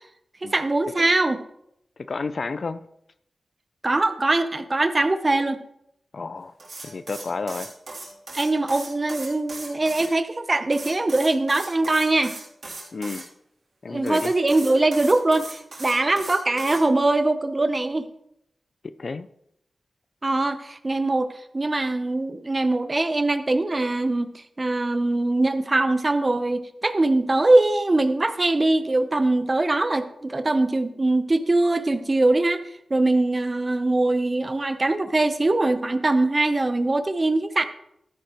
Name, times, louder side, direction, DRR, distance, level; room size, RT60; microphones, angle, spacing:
voice 1, 0.5-1.4 3.8-5.6 8.3-12.4 13.9-18.1 20.2-32.6 32.9-37.6, right 2 dB, 35° right, 10 dB, 0.8 m, -22 dB
voice 2, 2.1-2.9 6.1-6.5 6.8-7.7 12.9-13.2 13.8-14.3 19.0-19.3, left 4 dB, 60° left, 13 dB, 0.5 m, -31 dB
sound 1, 6.6-10.1 10.7-13.2 14.0-16.8, right 3 dB, 65° right, 3.3 m, -38 dB
12.5 x 10.0 x 3.1 m, 0.78 s
cardioid pair, 60°, 0 cm